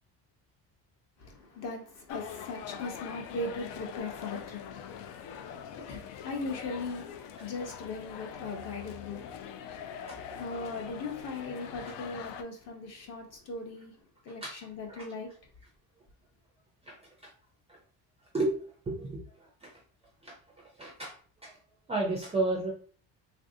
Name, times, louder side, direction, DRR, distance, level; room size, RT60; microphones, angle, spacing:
voice 1, 1.2-15.3, left 3 dB, 40° left, 0.7 m, -39 dB
sound 1, 2.1-12.4, left 8 dB, 80° left, 0.5 m, -43 dB
voice 2, 18.9-19.7 20.2-20.3 20.8-21.1 21.4-21.5 21.9-22.7, right 2 dB, 15° right, 0.3 m, -32 dB
3.4 x 2.6 x 2.6 m
cardioid pair, 180°, 41 cm